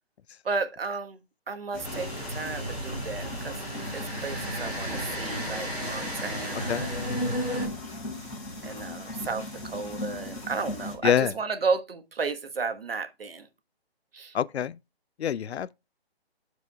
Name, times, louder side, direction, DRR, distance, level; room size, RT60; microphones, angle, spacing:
voice 1, 0.4-1.2 1.5-3.7 3.9-7.2 8.6-13.5 14.1-14.3, right 4 dB, 65° right, 1.4 m, -33 dB
sound 1, 1.7-11.0, left 2 dB, 10° left, 3.6 m, -39 dB
sound 2, 1.8-7.7, equal, 5° right, 2.8 m, -33 dB
voice 2, 14.3-14.7 15.2-15.7, left 9 dB, 90° left, 0.5 m, -25 dB
12.5 x 4.9 x 2.3 m
hypercardioid pair, 175°, 32 cm